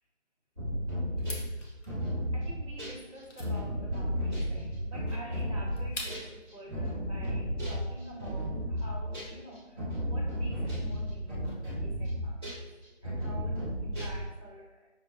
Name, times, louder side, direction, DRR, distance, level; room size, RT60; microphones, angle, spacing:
sound 1, 0.6-6.3 6.7-9.4 9.8-12.7 13.0-14.3, equal, 20° left, 1.0 m, -33 dB
sound 2, 1.2-6.5, left 1 dB, 80° left, 1.0 m, -45 dB
voice 1, 2.3-12.6 13.0-14.9, right 1 dB, 25° right, -4 dB, 0.8 m, -48 dB
5.7 x 2.1 x 2.4 m, 1.1 s
figure-of-eight pair, 165°, 36 cm